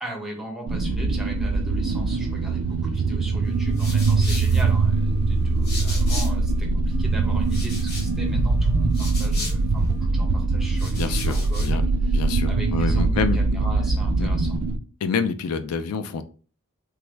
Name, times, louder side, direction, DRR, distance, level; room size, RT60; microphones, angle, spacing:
voice 1, 0.0-12.2 12.5-14.6, right 1 dB, ahead, 0 dB, 0.7 m, -38 dB
sound 1, 0.7-14.8, right 3 dB, 80° right, 0.4 m, -22 dB
sound 2, 3.4-6.6 6.9-10.0 10.6-11.8, left 2 dB, 45° left, 0.8 m, -38 dB
voice 2, 11.0-11.8 12.1-13.4 14.2-14.3 15.0-16.2, left 5 dB, 85° left, 11 dB, 0.3 m, -27 dB
3.5 x 2.0 x 3.3 m, 0.38 s
head